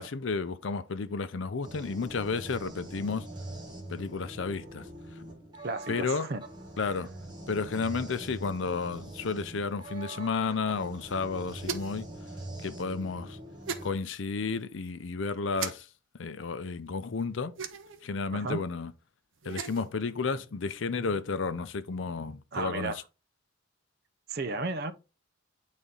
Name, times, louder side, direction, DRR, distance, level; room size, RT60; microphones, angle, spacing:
voice 1, 0.0-3.3 3.9-4.9 5.9-6.3 6.8-7.1 7.5-12.1 12.6-13.4 13.8-15.9 16.2-17.5 18.0-18.9 19.4-23.0, left 4 dB, 65° left, 0.5 m, -32 dB
sound 1, 1.6-13.9, right 1 dB, 20° right, 1.6 m, -43 dB
voice 2, 5.6-6.4 18.3-18.6 22.5-23.0 24.3-24.9, right 3 dB, 50° right, 0.6 m, -33 dB
sound 2, 11.6-12.1 13.7-13.9 15.6-15.7 17.6-18.0 19.4-19.9, right 5 dB, 70° right, 0.9 m, -36 dB
8.5 x 4.1 x 3.7 m
head